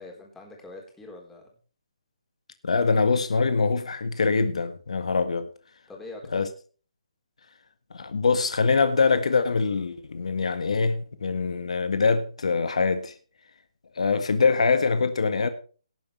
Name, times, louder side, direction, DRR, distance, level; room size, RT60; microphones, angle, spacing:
voice 1, 0.0-1.4 5.9-6.5, left 2 dB, 10° left, 4.0 m, -43 dB
voice 2, 2.6-5.5 6.3-6.5 7.9-13.1 14.0-15.5, left 4 dB, 70° left, 1.7 m, -23 dB
18.5 x 9.6 x 3.3 m
hypercardioid pair, 150°, 3 cm